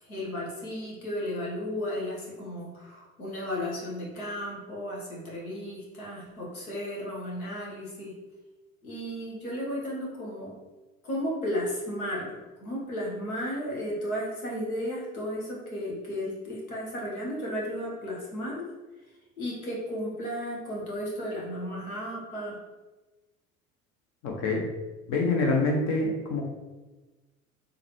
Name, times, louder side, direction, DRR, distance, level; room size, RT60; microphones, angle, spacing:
voice 1, 0.0-8.1 8.8-10.5 11.0-18.7 19.4-22.6, equal, 75° left, -4 dB, 1.3 m, -34 dB
voice 2, 24.2-24.7 25.1-26.4, left 3 dB, 40° left, 1 dB, 0.8 m, -26 dB
3.8 x 3.3 x 3.1 m, 1.2 s
figure-of-eight pair, 65°, 43 cm